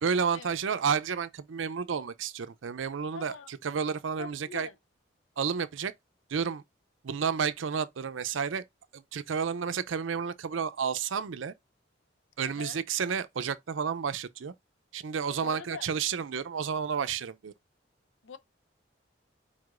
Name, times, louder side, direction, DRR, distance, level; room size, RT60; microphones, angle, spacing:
voice 1, 0.0-4.7 5.4-5.9 6.3-6.6 7.0-8.6 8.9-11.5 12.4-14.5 14.9-17.5, right 6 dB, 80° right, 0.5 m, -31 dB
voice 2, 3.1-3.5 4.2-4.7 12.4-12.8 15.4-15.9 18.2-18.4, left 6 dB, 85° left, 0.6 m, -43 dB
4.8 x 4.3 x 2.4 m
head